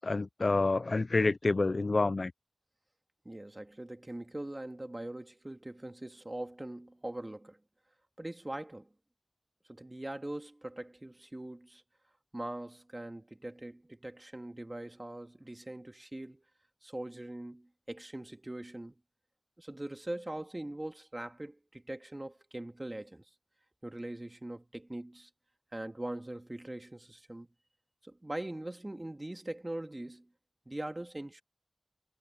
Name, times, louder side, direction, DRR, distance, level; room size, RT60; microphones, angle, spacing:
voice 1, 0.0-2.3, left 3 dB, 65° left, 0.3 m, -28 dB
voice 2, 3.2-7.6 8.2-8.9 9.7-11.8 12.3-16.4 16.8-19.0 19.6-23.2 23.8-25.3 25.7-27.5 28.0-30.3 30.7-31.4, right 1 dB, 30° right, 2.3 m, -42 dB
wide cardioid pair, 55°, 0 cm